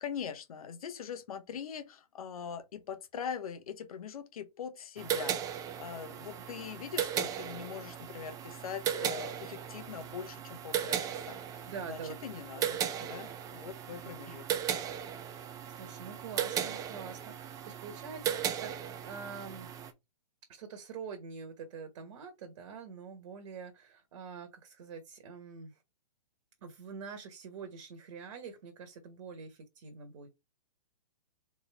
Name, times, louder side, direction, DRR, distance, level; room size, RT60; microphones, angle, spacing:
voice 1, 0.0-14.6, left 7 dB, 60° left, 1.1 m, -42 dB
sound 1, 5.0-19.9, right 9 dB, 15° right, 0.5 m, -37 dB
voice 2, 11.7-12.6 14.3-14.4 15.7-19.7 20.5-25.7 26.6-30.3, right 5 dB, 50° right, 1.3 m, -45 dB
4.2 x 3.5 x 3.4 m
hypercardioid pair, 130°, 20 cm